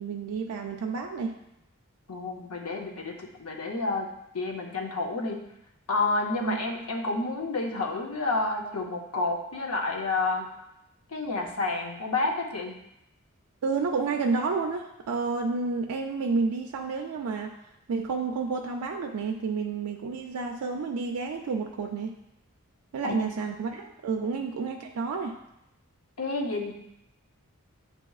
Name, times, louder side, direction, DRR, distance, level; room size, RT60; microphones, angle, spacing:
voice 1, 0.0-1.3 6.4-6.6 13.6-17.6 17.9-22.2 22.9-25.4, right 4 dB, 90° right, 2 dB, 0.4 m, -30 dB
voice 2, 2.1-4.1 4.3-5.4 5.9-10.5 11.1-12.7 23.0-23.4 24.2-24.3 26.2-26.7, left 3 dB, 80° left, 1 dB, 0.7 m, -30 dB
8.0 x 2.8 x 2.3 m, 0.83 s
head